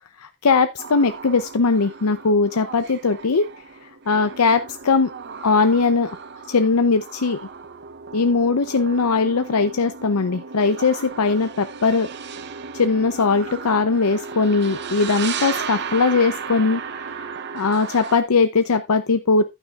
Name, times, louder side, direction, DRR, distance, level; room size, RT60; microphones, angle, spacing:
voice 1, 0.2-3.5 4.1-5.1 5.4-6.2 6.5-7.4 8.1-12.1 12.7-16.8 17.2-17.3 17.5-19.4, left 4 dB, 90° left, 9 dB, 0.7 m, -20 dB
sound 1, 0.8-18.2, right 6 dB, 50° right, 0.8 m, -35 dB
11.5 x 9.0 x 2.4 m, 0.22 s
head